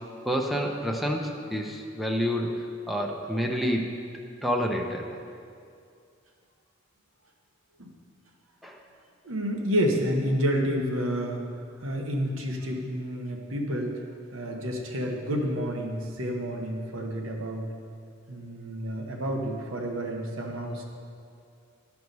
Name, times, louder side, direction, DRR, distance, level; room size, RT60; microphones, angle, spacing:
voice 1, 0.2-3.9 4.4-5.2 8.6-8.8, equal, ahead, 0 dB, 0.6 m, -28 dB
voice 2, 9.2-11.4 11.8-14.0 14.3-17.7 18.3-20.8, equal, 85° right, 1 dB, 1.1 m, -29 dB
12.5 x 4.7 x 5.4 m, 2.4 s
head